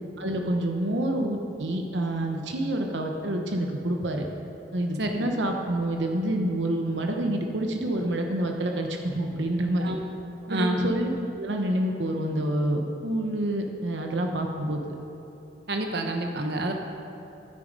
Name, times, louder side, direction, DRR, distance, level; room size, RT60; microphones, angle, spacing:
voice 1, 0.2-4.3 4.7-9.9 10.4-14.8, right 1 dB, 90° right, 3 dB, 1.0 m, -28 dB
voice 2, 5.0-5.3 9.8-10.0 10.5-10.9 15.7-16.7, right 1 dB, 65° right, 3 dB, 1.1 m, -28 dB
13.0 x 9.0 x 5.3 m, 3.0 s
head